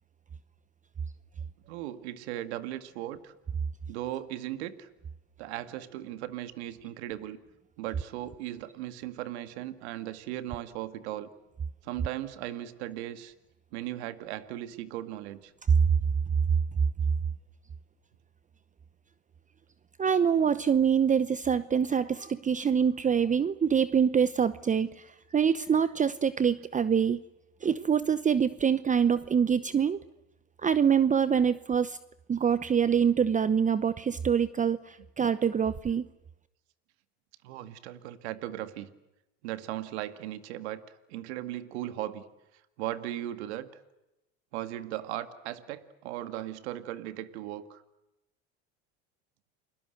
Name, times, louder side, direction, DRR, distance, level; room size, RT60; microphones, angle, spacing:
voice 1, 1.7-3.3 3.9-4.9 5.4-7.4 7.8-11.3 11.8-13.3 13.7-15.5 37.4-38.9 39.4-40.8 41.1-42.2 42.8-43.7 44.5-47.8, right 13 dB, 85° right, 11 dB, 2.0 m, -37 dB
voice 2, 20.0-27.2 27.6-30.0 30.6-32.0 32.3-36.0, right 7 dB, 25° right, 15 dB, 0.8 m, -25 dB
29.5 x 21.0 x 8.0 m, 0.94 s
supercardioid pair, 95°, 32 cm